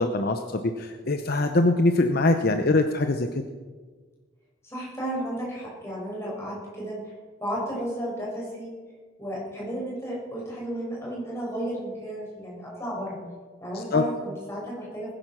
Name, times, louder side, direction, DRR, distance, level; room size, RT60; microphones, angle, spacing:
voice 1, 0.0-3.3 13.7-14.0, left 2 dB, 50° left, 6 dB, 0.8 m, -23 dB
voice 2, 4.6-7.0 7.4-8.7 9.2-13.2 13.6-15.1, equal, 15° left, -5 dB, 6.6 m, -33 dB
20.5 x 10.5 x 6.2 m, 1.5 s
head